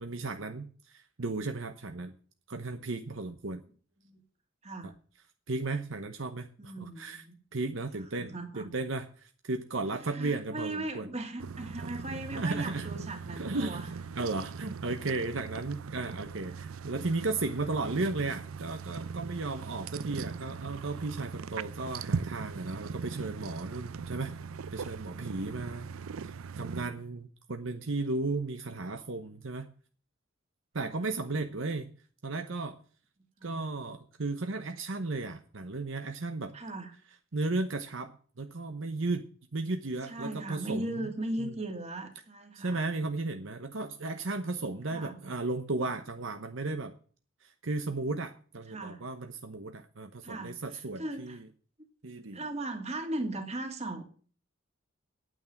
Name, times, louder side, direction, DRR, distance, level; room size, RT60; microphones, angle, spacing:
voice 1, 0.0-2.1 2.5-3.6 4.8-4.9 5.5-7.2 7.5-11.1 11.8-11.9 12.4-12.9 13.4-13.8 14.2-24.3 24.7-25.9 26.2-29.7 30.7-31.9 32.2-32.8 33.4-36.6 37.3-39.3 39.5-41.1 41.4-41.5 42.5-46.9 47.4-51.4 52.0-52.4, right 3 dB, 65° right, 7 dB, 0.9 m, -35 dB
voice 2, 6.6-7.4 8.2-8.7 10.0-13.9 25.7-25.8 26.7-27.0 30.8-31.1 33.4-33.7 36.5-37.0 40.0-42.8 44.9-45.2 48.7-49.0 50.2-51.4 52.3-54.0, right 2 dB, 30° right, 5 dB, 2.4 m, -38 dB
sound 1, 11.4-26.9, right 5 dB, 90° right, 0.5 m, -40 dB
9.1 x 9.1 x 7.1 m, 0.42 s
head